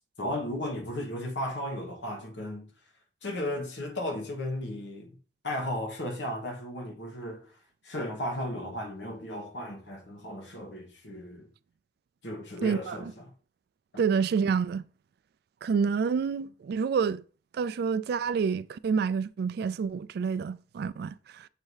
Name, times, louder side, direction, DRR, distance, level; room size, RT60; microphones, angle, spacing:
voice 1, 0.2-2.7 3.2-5.2 5.4-7.6 7.8-11.5 12.2-13.3, left 1 dB, 75° left, 1.3 m, -35 dB
voice 2, 12.6-13.0 14.0-14.8 15.6-17.2 17.5-21.5, right 6 dB, 60° right, 0.3 m, -28 dB
7.4 x 2.7 x 4.8 m
head